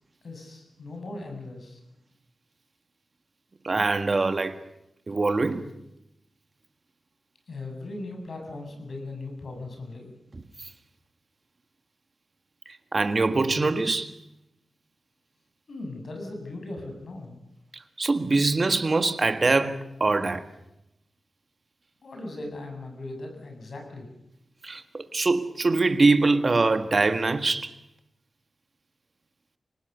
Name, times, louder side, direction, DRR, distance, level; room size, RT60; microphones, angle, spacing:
voice 1, 0.2-1.8 7.5-10.1 15.7-17.4 22.0-24.1, left 2 dB, 60° left, 7.6 m, -38 dB
voice 2, 3.6-4.6 5.1-5.7 10.3-10.4 12.7-14.1 17.7-20.4 24.6-27.7, right 3 dB, 40° right, 1.7 m, -23 dB
26.0 x 19.0 x 6.9 m
wide cardioid pair, 105°, 0 cm